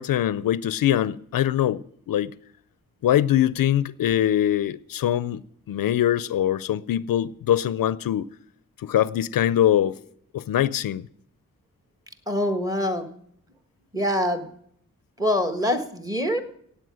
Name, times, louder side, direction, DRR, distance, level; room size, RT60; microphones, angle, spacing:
voice 1, 0.0-2.3 3.0-5.4 5.7-8.3 8.8-10.0 10.3-11.0, left 11 dB, 75° left, 0.5 m, -23 dB
voice 2, 12.3-13.1 13.9-14.5 15.2-16.4, left 1 dB, 10° right, 1.5 m, -24 dB
17.0 x 8.4 x 6.2 m
wide cardioid pair, 135°, 34 cm